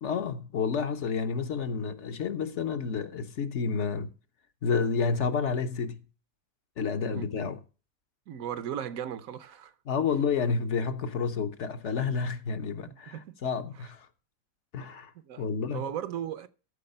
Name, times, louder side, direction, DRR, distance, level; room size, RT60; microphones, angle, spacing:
voice 1, 0.0-4.1 4.6-6.0 6.8-7.6 9.9-14.1 14.7-15.1 15.4-15.9, left 5 dB, 60° left, 1.1 m, -30 dB
voice 2, 8.3-9.7 12.9-13.4 15.1-15.5 15.7-16.5, right 9 dB, 75° right, 1.2 m, -37 dB
13.5 x 4.8 x 5.3 m
omnidirectional pair, 1.5 m